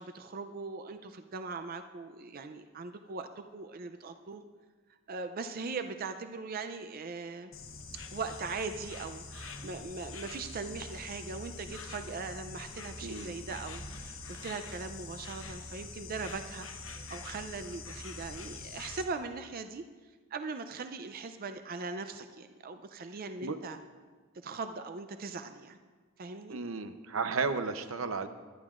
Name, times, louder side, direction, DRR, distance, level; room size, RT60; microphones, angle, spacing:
voice 1, 0.0-4.4 5.1-7.5 8.1-19.8 20.3-23.8 24.3-25.8 26.2-26.6, right 4 dB, 45° right, 8 dB, 0.5 m, -40 dB
Insect, 7.5-19.0, left 3 dB, 70° left, 1.1 m, -44 dB
voice 2, 13.0-13.4 23.4-23.6 26.5-28.3, right 4 dB, 85° right, 9 dB, 0.7 m, -33 dB
22.0 x 10.5 x 2.5 m, 1.4 s
head